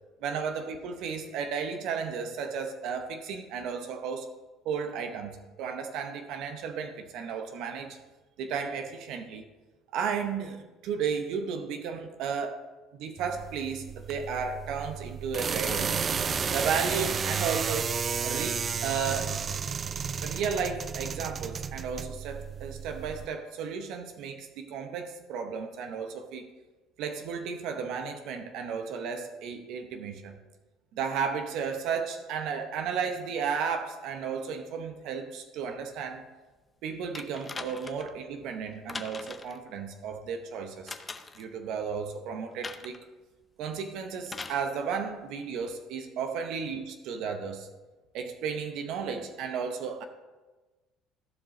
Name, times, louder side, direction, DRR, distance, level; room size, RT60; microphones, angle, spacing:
voice 1, 0.2-4.3 4.6-8.0 8.4-9.4 9.9-12.7 12.9-16.0 16.5-18.0 18.2-19.4 20.2-26.5 27.0-30.3 30.9-36.2 36.8-41.0 41.4-43.0 43.6-47.7 48.1-50.0, right 6 dB, 70° right, 7 dB, 0.8 m, -34 dB
sound 1, 13.2-23.3, right 6 dB, 40° right, 0.4 m, -32 dB
sound 2, 37.1-38.1 38.9-39.6 40.9-41.5 42.6-43.0 44.3-44.6 45.7-45.8, left 3 dB, 20° left, 0.7 m, -40 dB
14.5 x 4.9 x 3.8 m, 1.2 s
supercardioid pair, 85°, 0 cm